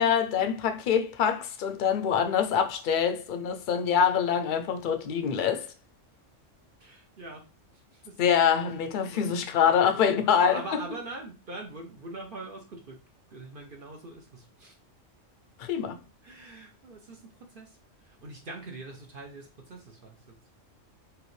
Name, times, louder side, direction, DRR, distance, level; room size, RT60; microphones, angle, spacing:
voice 1, 0.0-5.7 8.2-10.8 15.6-16.0, left 7 dB, 55° left, 0.6 m, -25 dB
voice 2, 6.8-7.4 7.9-8.2 9.1-9.2 9.6-13.0 13.3-14.7 16.2-17.8 18.2-20.4, right 2 dB, 50° right, 0.9 m, -43 dB
4.9 x 2.6 x 3.2 m
omnidirectional pair, 1.3 m